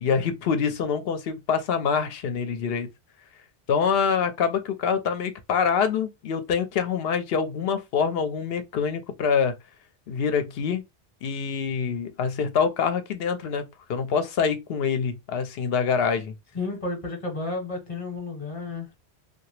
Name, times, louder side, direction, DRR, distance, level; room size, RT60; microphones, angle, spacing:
voice 1, 0.0-2.9 3.7-9.5 10.1-10.8 11.2-13.6 13.9-16.3, left 6 dB, 70° left, 0.8 m, -25 dB
voice 2, 16.5-18.9, left 3 dB, 35° left, 1.0 m, -32 dB
2.8 x 2.3 x 3.1 m
omnidirectional pair, 1.1 m